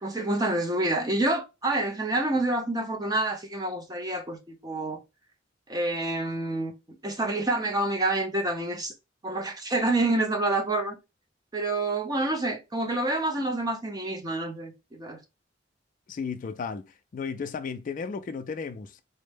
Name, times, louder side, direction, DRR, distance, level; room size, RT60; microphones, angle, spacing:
voice 1, 0.0-5.0 5.7-6.7 7.0-8.9 9.2-11.0 11.5-15.2, right 2 dB, 20° right, 0.6 m, -28 dB
voice 2, 16.1-16.9 17.1-19.0, left 5 dB, 45° left, 0.3 m, -34 dB
4.1 x 2.1 x 3.3 m
head